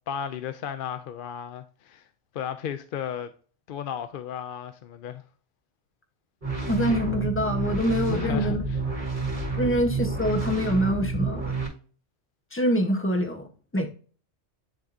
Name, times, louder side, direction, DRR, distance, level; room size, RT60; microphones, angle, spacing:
voice 1, 0.1-2.1 2.3-3.3 3.7-5.2 8.1-8.8, left 8 dB, 60° left, 0.6 m, -34 dB
sound 1, 6.4-11.7, right 4 dB, 65° right, 2.6 m, -29 dB
voice 2, 6.7-8.6 9.6-11.6 12.5-13.9, equal, 10° left, 0.8 m, -25 dB
10.5 x 3.6 x 2.5 m
omnidirectional pair, 1.2 m